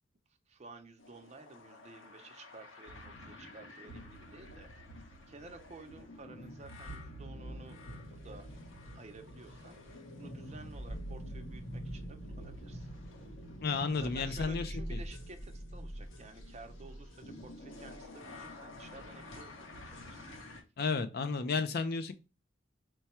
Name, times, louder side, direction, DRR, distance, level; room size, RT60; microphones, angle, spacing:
voice 1, 0.5-4.7 5.0-7.8 8.0-8.5 8.9-12.9 13.9-20.3, right 3 dB, 35° right, 6 dB, 0.7 m, -53 dB
sound 1, 1.0-20.6, equal, 80° left, 0.9 m, -46 dB
voice 2, 13.6-15.0 20.8-22.1, left 4 dB, 55° left, 10 dB, 0.5 m, -33 dB
4.6 x 2.2 x 4.2 m, 0.29 s
head